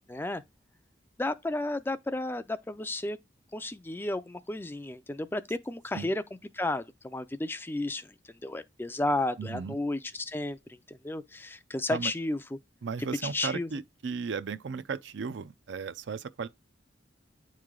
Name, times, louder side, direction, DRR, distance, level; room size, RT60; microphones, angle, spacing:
voice 1, 0.1-0.4 1.2-3.2 3.5-6.2 6.5-12.4 13.2-13.7, left 2 dB, 10° left, 0.3 m, -33 dB
voice 2, 9.4-9.8 11.9-12.1 12.8-16.5, right 5 dB, 70° right, 0.4 m, -35 dB
9.4 x 3.2 x 3.7 m
head